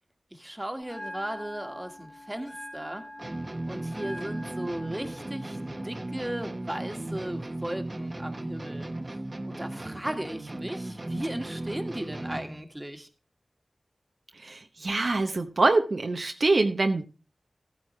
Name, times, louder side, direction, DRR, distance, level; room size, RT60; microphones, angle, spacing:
voice 1, 0.3-3.0 3.7-8.9 9.5-13.1, right 1 dB, 15° right, 6 dB, 1.7 m, -36 dB
Bell, 0.8-8.8, left 1 dB, 50° left, 2.4 m, -46 dB
sound 1, 3.2-12.6, right 1 dB, 35° right, 1.1 m, -36 dB
voice 2, 14.4-17.0, right 3 dB, 65° right, 5 dB, 0.8 m, -24 dB
14.0 x 8.9 x 3.2 m, 0.31 s
cardioid pair, 40°, 0 cm